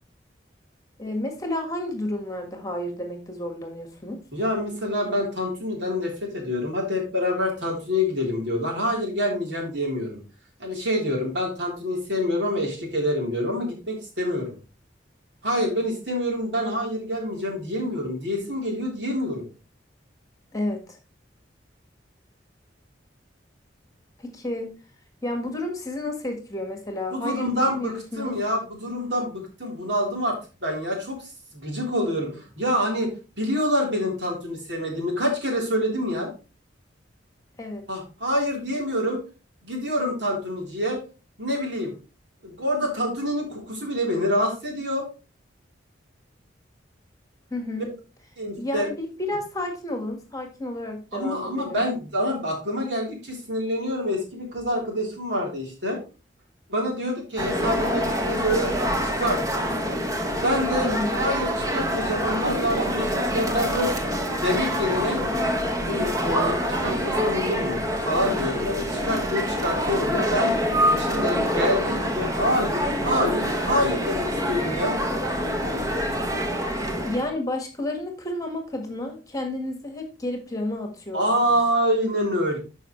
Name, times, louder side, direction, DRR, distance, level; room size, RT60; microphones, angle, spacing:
voice 1, 1.0-4.2 20.5-21.0 24.2-24.7 25.2-28.4 37.6-37.9 47.5-47.9 48.6-51.8 60.8-61.2 77.1-81.2, left 1 dB, 20° left, 4 dB, 1.6 m, -31 dB
voice 2, 4.3-10.2 10.6-14.6 15.4-19.4 27.1-33.1 33.4-36.3 37.9-39.2 39.6-41.0 41.4-41.9 42.4-45.0 48.4-48.9 51.1-56.0 56.7-58.7 59.0-59.4 60.3-64.0 64.3-65.2 65.9-70.5 71.0-75.0 81.1-82.6, equal, 70° right, -1 dB, 3.7 m, -26 dB
sound 1, 57.4-77.3, equal, 20° right, 1.1 m, -26 dB
12.0 x 5.5 x 3.2 m, 0.34 s
head